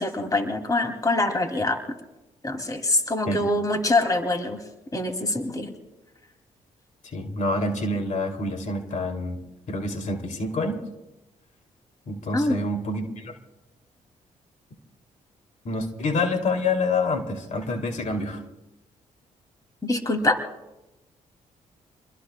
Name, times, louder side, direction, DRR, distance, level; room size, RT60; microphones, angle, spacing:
voice 1, 0.0-1.8 2.4-4.6 4.9-5.7 12.3-12.6 19.8-20.4, left 2 dB, 25° left, 5 dB, 2.4 m, -24 dB
voice 2, 7.0-9.4 9.7-10.8 12.1-13.4 15.6-18.4, left 2 dB, 60° left, 4 dB, 2.6 m, -27 dB
28.0 x 21.5 x 2.2 m, 0.98 s
cardioid pair, 65°, 14 cm